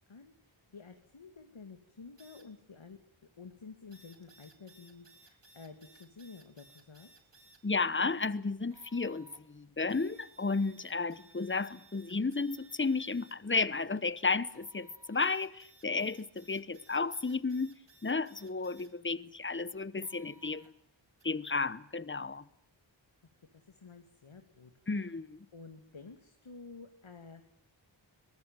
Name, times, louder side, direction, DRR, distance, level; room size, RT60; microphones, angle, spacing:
voice 1, 0.1-3.0 3.4-7.1 23.5-25.1 25.5-27.5, left 4 dB, 75° left, 2.4 m, -51 dB
sound 1, 2.2-2.4 3.9-7.6 8.7-9.4 9.9-13.4 14.5-18.9 20.0-20.7 21.2-21.3, right 3 dB, 60° right, 3.0 m, -61 dB
voice 2, 7.6-17.7 18.0-20.7 21.2-22.4 24.9-25.4, left 4 dB, 25° left, 1.0 m, -33 dB
23.5 x 19.5 x 9.1 m
wide cardioid pair, 75°, 48 cm